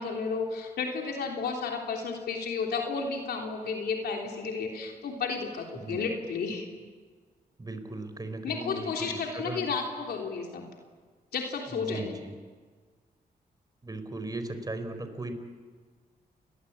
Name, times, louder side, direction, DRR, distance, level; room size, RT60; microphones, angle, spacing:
voice 1, 0.0-6.7 8.4-10.7 11.3-12.1, left 5 dB, 90° left, 1 dB, 3.4 m, -32 dB
voice 2, 7.6-9.7 11.7-12.3 13.8-15.3, right 2 dB, 25° right, 9 dB, 4.2 m, -37 dB
29.5 x 21.0 x 8.7 m, 1.5 s
cardioid pair, 90°, 16 cm